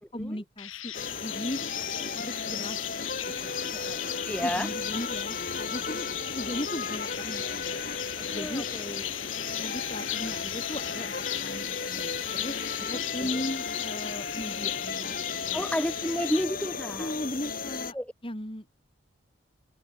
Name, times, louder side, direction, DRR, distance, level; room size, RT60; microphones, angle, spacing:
voice 1, 0.1-0.9 1.2-1.6 2.1-2.8 3.4-3.5 4.3-6.1 6.3-7.7 8.3-8.6 9.6-15.1 15.4-15.6 17.0-18.0 18.2-18.7, equal, 25° left, 4.2 m, -37 dB
sound 1, 0.6-16.4, left 13 dB, 90° left, 7.7 m, -37 dB
sound 2, 0.9-17.9, left 4 dB, 45° left, 6.9 m, -35 dB
voice 2, 4.2-5.0 8.2-9.0 12.8-12.9 13.2-13.4 15.5-17.1 17.9-18.1, equal, 5° left, 4.7 m, -32 dB
open air
head